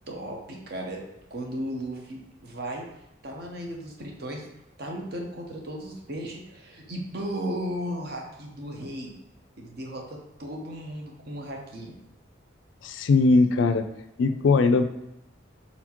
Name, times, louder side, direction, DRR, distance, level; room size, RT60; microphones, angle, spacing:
voice 1, 0.1-1.0 1.3-2.9 3.2-4.4 4.8-9.1 9.6-11.9, equal, 50° right, 1 dB, 0.8 m, -35 dB
voice 2, 12.8-13.9 14.2-14.8, left 3 dB, 70° left, 9 dB, 0.4 m, -20 dB
4.2 x 4.2 x 2.9 m, 0.89 s
head